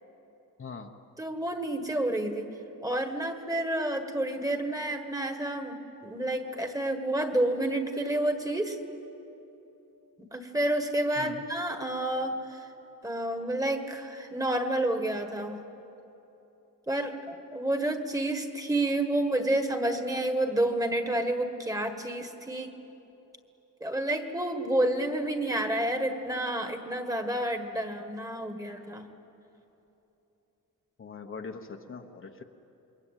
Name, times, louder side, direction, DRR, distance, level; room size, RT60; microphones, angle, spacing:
voice 1, 0.6-0.9 11.2-11.4 31.0-32.4, left 5 dB, 35° left, 4 dB, 1.1 m, -41 dB
voice 2, 1.2-2.5 2.8-8.8 10.2-12.7 13.0-15.6 16.9-22.7 23.8-29.1, right 1 dB, 10° right, 6 dB, 1.7 m, -29 dB
28.0 x 23.0 x 9.1 m, 3.0 s
wide cardioid pair, 170°, 35 cm